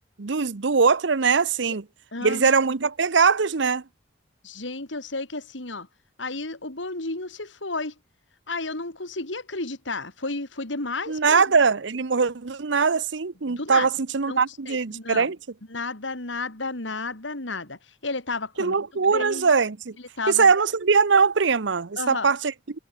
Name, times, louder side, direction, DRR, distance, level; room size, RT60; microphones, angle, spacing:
voice 1, 0.2-1.9 2.2-3.8 11.1-15.4 18.6-20.0 20.3-22.8, right 5 dB, 70° right, 0.8 m, -21 dB
voice 2, 2.1-2.6 4.4-5.9 6.2-7.9 8.5-11.4 13.5-13.9 14.3-14.4 14.7-15.3 15.7-18.8 19.1-19.5 20.2-20.5 22.0-22.3, left 3 dB, 80° left, 3.5 m, -32 dB
head